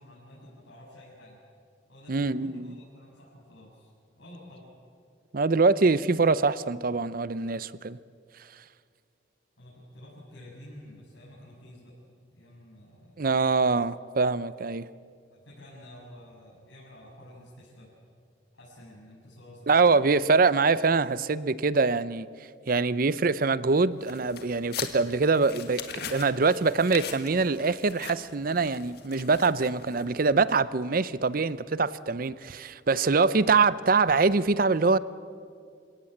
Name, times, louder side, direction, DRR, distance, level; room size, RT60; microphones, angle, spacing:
voice 1, 0.0-1.4 1.9-3.9 4.2-4.7 9.6-11.9 12.3-13.5 15.3-17.9 18.5-20.1 22.7-22.9, left 1 dB, 75° left, -8 dB, 7.2 m, -50 dB
voice 2, 2.1-2.8 5.3-8.0 13.2-14.9 19.7-22.3 22.7-35.0, right 4 dB, 50° right, 17 dB, 0.6 m, -24 dB
sound 1, 24.0-30.3, left 8 dB, 55° left, 1.8 m, -41 dB
28.0 x 17.5 x 7.9 m, 2.3 s
head